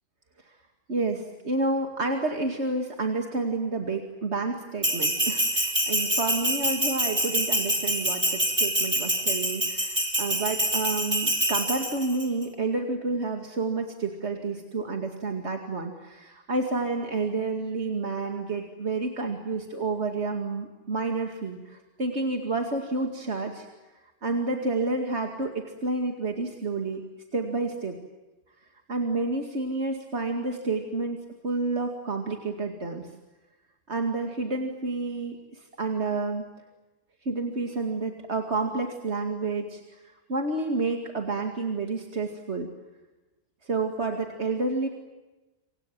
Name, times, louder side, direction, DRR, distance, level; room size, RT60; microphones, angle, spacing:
voice 1, 0.9-23.7 24.2-27.0 27.3-28.0 28.9-33.1 33.9-36.5 37.2-42.7 43.6-44.9, right 3 dB, 85° right, 4 dB, 2.6 m, -30 dB
Bell, 4.8-12.3, right 1 dB, 20° right, 3.6 m, -26 dB
28.5 x 25.5 x 7.7 m, 1.1 s
omnidirectional pair, 1.1 m